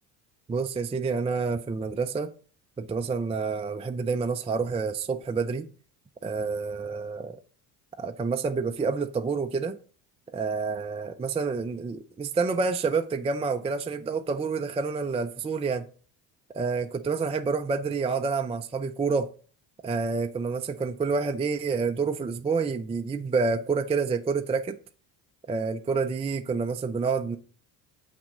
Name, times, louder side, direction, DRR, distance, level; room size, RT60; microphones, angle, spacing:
voice 1, 0.5-2.3 2.8-5.7 6.2-7.4 8.0-9.8 10.3-15.9 16.5-19.3 19.8-24.8 25.5-27.4, right 4 dB, 15° right, 0.4 m, -28 dB
7.5 x 5.9 x 3.8 m
hypercardioid pair, 70°, 47 cm